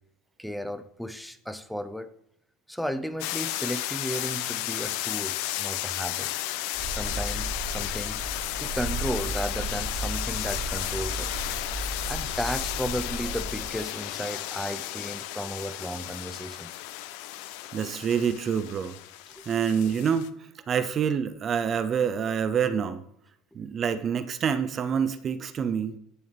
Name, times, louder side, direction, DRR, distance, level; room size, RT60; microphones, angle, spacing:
voice 1, 0.4-2.1 2.7-6.3 6.9-8.2 8.6-11.4 12.1-16.7 17.8-17.9 19.3-19.5, equal, ahead, 11 dB, 0.6 m, -34 dB
sound 1, 3.2-20.3, left 14 dB, 65° left, 0.4 m, -33 dB
Purr, 6.7-13.7, right 2 dB, 75° right, 2.2 m, -35 dB
voice 2, 17.7-19.0 19.5-23.0 23.5-26.0, right 7 dB, 40° right, 12 dB, 0.6 m, -27 dB
11.0 x 7.0 x 3.1 m, 0.73 s
figure-of-eight pair, 70°, 0 cm